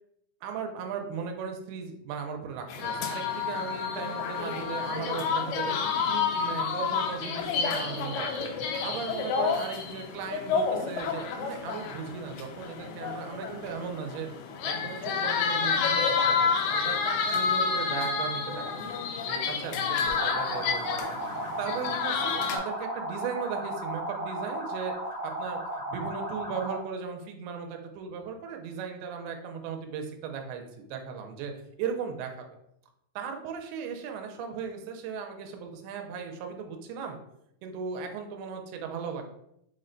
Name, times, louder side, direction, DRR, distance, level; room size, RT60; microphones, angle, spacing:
voice 1, 0.4-5.7 6.1-8.5 8.8-14.3 14.6-17.0 17.3-21.2 21.6-31.5 31.8-32.5 33.2-37.2 37.6-39.3, right 6 dB, 85° right, 4 dB, 2.6 m, -37 dB
sound 1, 2.7-22.6, left 5 dB, 85° left, 2.6 m, -29 dB
sound 2, 20.1-26.9, right 1 dB, 70° left, 0.7 m, -35 dB
6.4 x 2.2 x 3.8 m, 0.78 s
omnidirectional pair, 4.5 m